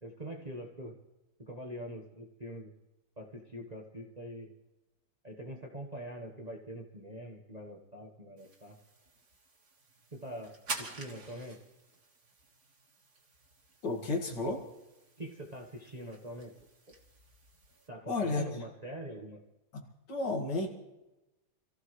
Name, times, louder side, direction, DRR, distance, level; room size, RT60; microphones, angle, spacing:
voice 1, 0.0-0.9 1.4-2.7 3.2-4.5 5.2-8.8 10.1-11.6 15.2-16.5 16.9-17.0 17.9-19.4, right 1 dB, 25° right, 1 dB, 1.1 m, -44 dB
sound 1, 8.4-17.9, right 3 dB, 50° right, 2.3 m, -48 dB
voice 2, 13.8-14.6 18.1-18.5 19.7-20.7, left 3 dB, 60° left, 2 dB, 2.6 m, -32 dB
26.5 x 15.0 x 3.2 m, 1.0 s
omnidirectional pair, 2.1 m